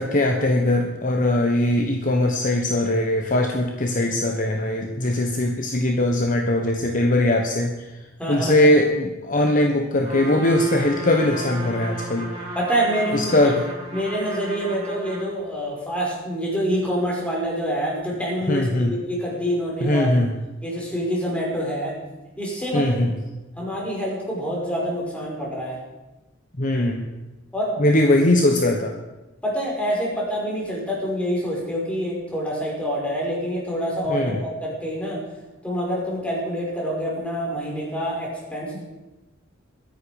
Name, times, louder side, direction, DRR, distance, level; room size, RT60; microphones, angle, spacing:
voice 1, 0.0-7.9 8.3-12.3 13.1-13.7 18.5-18.9 19.8-20.4 22.7-23.1 26.6-27.1 27.8-28.9 34.1-34.4, left 1 dB, 40° left, 2 dB, 1.2 m, -20 dB
voice 2, 8.2-8.7 12.6-13.5 13.9-20.1 20.6-21.9 22.4-23.0 23.6-25.8 27.5-27.8 29.4-35.2 35.6-38.8, equal, 5° left, -3 dB, 5.2 m, -26 dB
Trumpet, 10.0-15.3, right 1 dB, 30° right, 4.0 m, -35 dB
22.0 x 10.5 x 5.1 m, 1.1 s
head